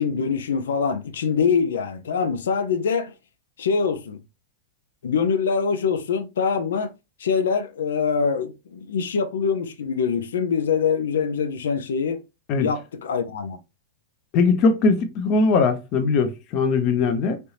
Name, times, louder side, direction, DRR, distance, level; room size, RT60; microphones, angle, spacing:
voice 1, 0.0-3.1 3.6-4.2 5.0-6.9 7.2-12.2 12.6-13.6, left 6 dB, 80° left, 0.6 m, -24 dB
voice 2, 14.3-17.4, left 4 dB, 45° left, 0.8 m, -20 dB
3.3 x 2.7 x 2.9 m
hypercardioid pair, 110°, 0 cm